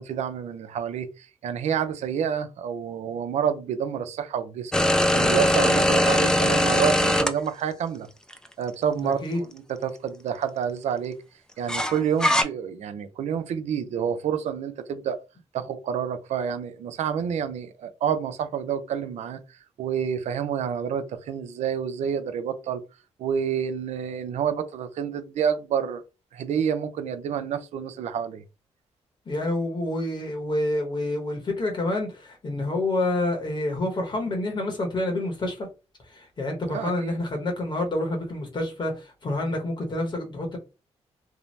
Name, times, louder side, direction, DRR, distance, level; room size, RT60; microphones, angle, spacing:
voice 1, 0.0-4.7 5.1-8.1 8.6-11.1 11.6-15.2 15.5-19.4 19.8-22.8 23.2-26.0 26.3-28.4 36.7-37.2, right 8 dB, 80° right, 0.5 m, -28 dB
sound 1, 4.7-7.3 8.3-8.4 11.7-12.4, left 1 dB, 5° left, 0.4 m, -20 dB
voice 2, 9.0-9.4 29.3-35.7 36.1-40.6, left 1 dB, 40° left, 0.9 m, -28 dB
2.7 x 2.0 x 3.1 m
cardioid pair, 85°, 12 cm